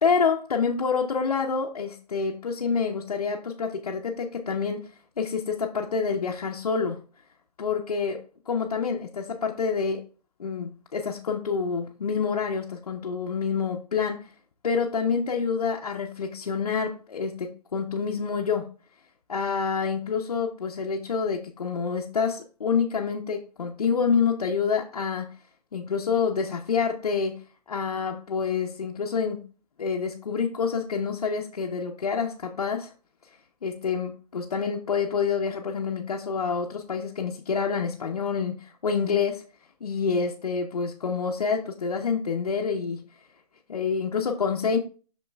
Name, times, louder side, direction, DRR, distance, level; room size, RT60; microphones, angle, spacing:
voice 1, 0.0-7.0 7.6-10.0 10.4-14.3 14.6-18.7 19.3-25.3 25.7-27.4 27.7-29.4 29.8-32.9 33.6-39.4 39.8-43.0 43.7-44.8, left 5 dB, 60° left, 0.7 m, -27 dB
7.1 x 6.0 x 2.3 m
hypercardioid pair, 175°, 21 cm